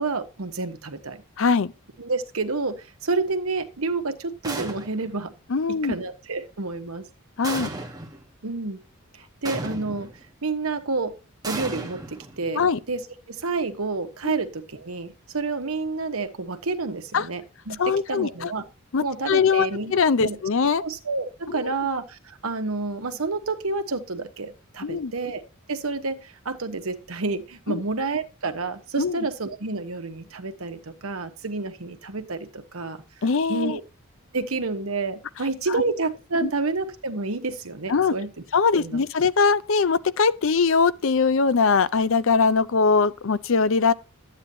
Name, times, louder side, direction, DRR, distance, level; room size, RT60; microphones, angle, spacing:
voice 1, 0.0-1.2 2.0-5.3 5.7-7.1 7.5-7.7 8.4-8.8 9.1-10.1 10.4-11.2 11.4-18.6 19.0-19.9 20.2-20.4 20.8-25.4 25.7-33.0 33.5-33.8 34.3-38.3 38.7-39.0, right 3 dB, 85° right, 1.2 m, -29 dB
voice 2, 1.4-1.7 5.5-5.9 7.4-7.7 12.6-12.8 14.2-14.3 17.1-17.3 17.8-18.5 18.9-20.8 21.5-21.7 24.8-25.1 27.7-27.8 29.0-29.2 33.2-33.8 36.4-36.5 37.9-38.1 38.5-43.9, left 5 dB, 65° left, 0.6 m, -21 dB
sound 1, 4.4-5.2 7.4-8.2 9.4-10.2 11.4-12.7, right 2 dB, 20° right, 1.2 m, -34 dB
12.0 x 8.8 x 2.8 m
head